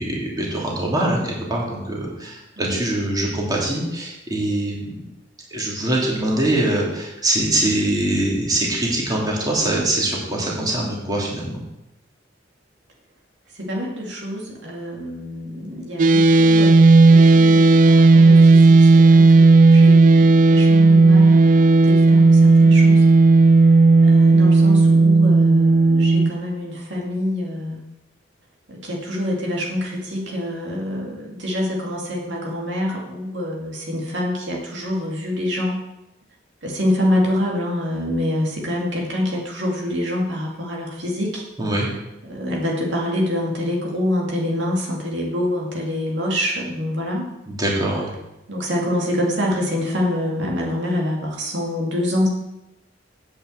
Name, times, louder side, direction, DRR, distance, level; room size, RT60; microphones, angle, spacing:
voice 1, 0.0-5.0 5.5-11.6 41.6-41.9 47.5-48.1, right 1 dB, 20° right, -3 dB, 2.6 m, -23 dB
voice 2, 13.6-23.0 24.0-27.8 28.7-35.8 36.6-41.4 41.8-47.3 48.5-52.3, left 1 dB, 75° right, -2 dB, 2.4 m, -26 dB
sound 1, 16.0-26.3, right 3 dB, 45° right, 0.4 m, -12 dB
8.2 x 6.4 x 7.9 m, 0.90 s
head